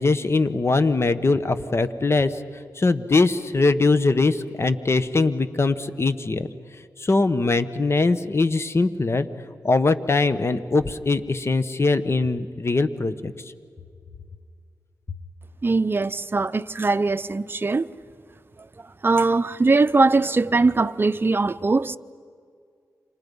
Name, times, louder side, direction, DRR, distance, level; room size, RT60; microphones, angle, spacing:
voice 1, 0.0-2.4 2.8-6.5 7.0-9.3 9.6-13.3, left 3 dB, 40° left, 1.3 m, -21 dB
voice 2, 15.6-17.9 19.0-22.0, right 3 dB, 35° right, 0.7 m, -21 dB
30.0 x 26.0 x 5.5 m
cardioid pair, 60°, 6 cm